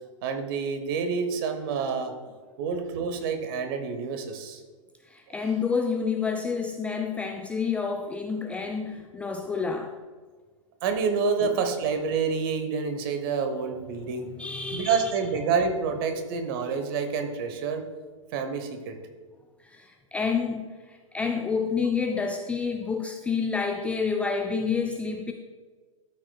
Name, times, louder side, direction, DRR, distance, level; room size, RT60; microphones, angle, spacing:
voice 1, 0.2-2.1 2.6-4.6 10.8-14.3 14.7-17.8 18.3-19.0, right 5 dB, 45° right, 7 dB, 1.1 m, -28 dB
voice 2, 5.1-9.9 11.4-11.5 14.4-15.1 19.6-25.3, left 5 dB, 5° left, 3 dB, 0.3 m, -29 dB
12.5 x 6.0 x 2.3 m, 1.4 s
figure-of-eight pair, 110°, 17 cm